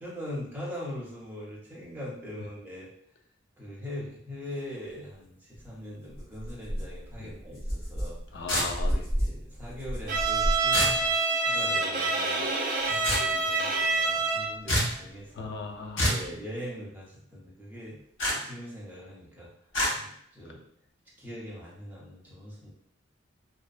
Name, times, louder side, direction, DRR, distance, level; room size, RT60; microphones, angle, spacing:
voice 1, 0.0-2.9 3.6-8.4 8.9-10.8 11.4-12.5 12.8-15.5 16.0-18.0 18.3-19.5 19.9-20.6 21.2-22.7, equal, 10° right, -6 dB, 0.6 m, -41 dB
sound 1, 5.5-5.6 6.1-11.1, equal, 30° left, 0.9 m, -33 dB
voice 2, 8.3-9.0 15.4-16.1, left 4 dB, 60° left, 3 dB, 0.4 m, -37 dB
sound 2, 8.5-9.0 10.7-11.0 13.0-13.3 14.7-15.0 16.0-16.3 18.2-18.4 19.7-19.9, equal, 75° left, 1.1 m, -26 dB
Bowed string instrument, 10.1-14.6, right 3 dB, 45° right, 0.3 m, -27 dB
2.6 x 2.0 x 2.3 m, 0.69 s
head